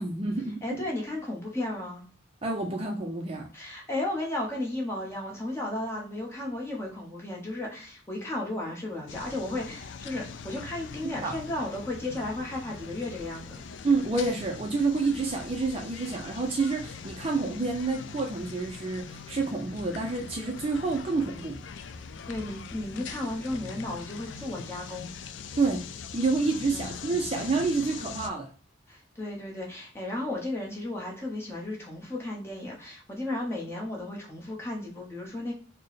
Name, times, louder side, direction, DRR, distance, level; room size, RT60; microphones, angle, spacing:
voice 1, 0.0-0.8 2.4-3.5 11.2-11.4 13.8-21.6 25.6-25.8 26.1-28.5, right 3 dB, 30° right, 2 dB, 0.4 m, -28 dB
voice 2, 0.6-2.0 3.5-13.6 22.3-25.1 26.7-26.9 28.9-35.5, left 1 dB, 15° left, -2 dB, 1.0 m, -34 dB
sound 1, 9.1-28.3, left 5 dB, 70° left, 0.3 m, -42 dB
4.3 x 2.1 x 3.1 m, 0.40 s
head